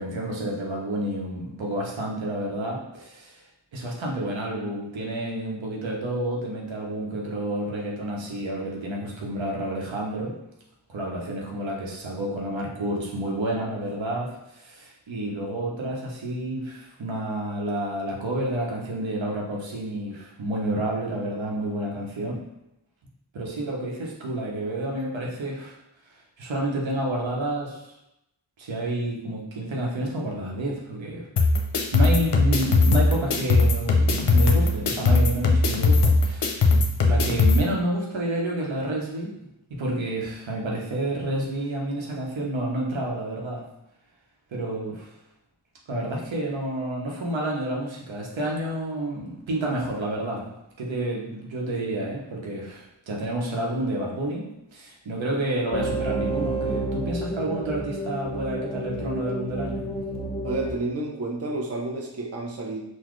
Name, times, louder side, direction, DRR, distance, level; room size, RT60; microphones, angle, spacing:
voice 1, 0.0-3.4 3.7-10.3 10.9-22.4 23.3-25.8 26.4-27.9 28.6-31.3 31.9-36.6 37.1-39.3 39.8-43.6 44.5-45.1 45.9-54.4 54.7-59.8, right 1 dB, 75° right, -2 dB, 0.9 m, -29 dB
sound 1, 31.4-37.6, left 3 dB, 60° left, 0.6 m, -20 dB
sound 2, 55.7-60.7, right 2 dB, 15° left, 0.7 m, -30 dB
voice 2, 60.4-62.8, right 2 dB, 30° right, 0 dB, 0.6 m, -30 dB
4.0 x 2.2 x 3.1 m, 0.86 s
cardioid pair, 45°, 46 cm